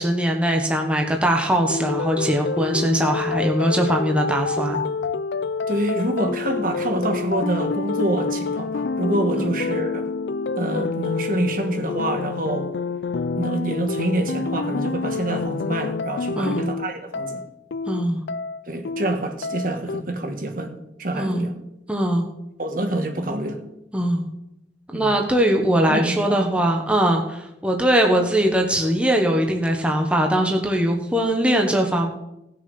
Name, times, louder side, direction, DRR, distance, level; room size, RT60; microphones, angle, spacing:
voice 1, 0.0-4.8 9.4-9.5 16.3-16.7 17.9-18.2 21.1-21.5 21.9-22.3 23.9-24.3 24.9-32.1, right 1 dB, 5° right, 2 dB, 1.3 m, -21 dB
sound 1, 1.7-20.0, left 4 dB, 75° left, 0.5 m, -27 dB
voice 2, 5.7-10.0 10.6-12.7 13.4-17.4 18.7-21.5 22.6-23.6 24.9-25.1 25.9-26.4, right 1 dB, 50° right, 5 dB, 1.5 m, -26 dB
18.0 x 6.7 x 5.5 m, 0.89 s
head